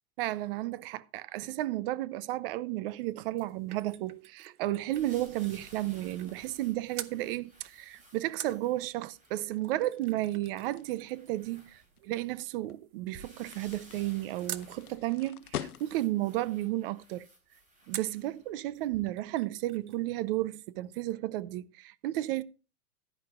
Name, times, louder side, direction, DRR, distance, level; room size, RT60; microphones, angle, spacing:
voice 1, 0.2-17.3 17.9-22.4, right 16 dB, 40° right, 0.6 m, -33 dB
sound 1, 3.0-6.7 6.9-7.2 8.4-14.7 17.9-18.3 18.7-18.8 19.1-20.1 20.3-20.4, right 11 dB, 85° right, 0.9 m, -47 dB
sound 2, 4.9-9.4 10.0-10.2 10.7-12.3 13.1-19.3 19.9-20.0, right 2 dB, 15° right, 4.0 m, -56 dB
sound 3, 5.9-16.3, left 10 dB, 90° left, 0.9 m, -47 dB
15.5 x 11.0 x 2.4 m
hypercardioid pair, 135°, 44 cm